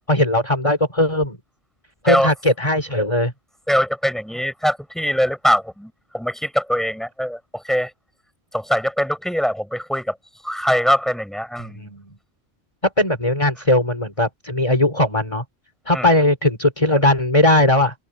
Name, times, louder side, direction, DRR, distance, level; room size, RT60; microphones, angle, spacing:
voice 1, 0.1-1.4 2.0-3.3 11.7-12.0 13.0-15.4 15.9-17.9, left 1 dB, 30° left, 3.8 m, -18 dB
voice 2, 3.7-7.9 8.5-10.2 10.4-11.9 15.9-16.1, equal, ahead, 7.7 m, -22 dB
omnidirectional pair, 1.1 m